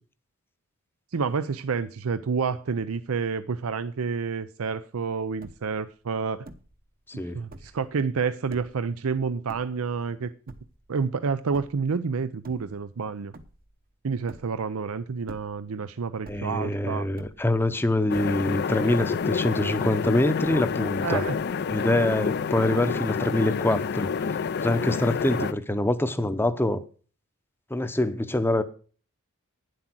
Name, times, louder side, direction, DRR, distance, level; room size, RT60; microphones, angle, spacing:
voice 1, 1.1-6.5 7.1-10.3 10.9-13.3 14.0-17.1 21.0-21.4 25.4-25.5, right 5 dB, 85° right, 0.6 m, -29 dB
sound 1, 4.9-5.0 5.2-5.9 6.4-6.8 7.4-7.9 8.5-8.9 9.5-10.1 10.5-10.9 11.5-11.9 12.3-13.0 13.3-13.8 14.3-14.8 15.2-15.8 16.2-16.7 17.2-17.8 18.1-18.7, right 2 dB, 45° right, 0.9 m, -47 dB
voice 2, 7.1-7.4 16.3-21.2 21.7-24.1 24.6-26.8 27.7-28.6, left 1 dB, 10° left, 0.7 m, -25 dB
sound 2, 18.1-25.5, left 6 dB, 50° left, 0.4 m, -28 dB
9.9 x 7.9 x 6.0 m
head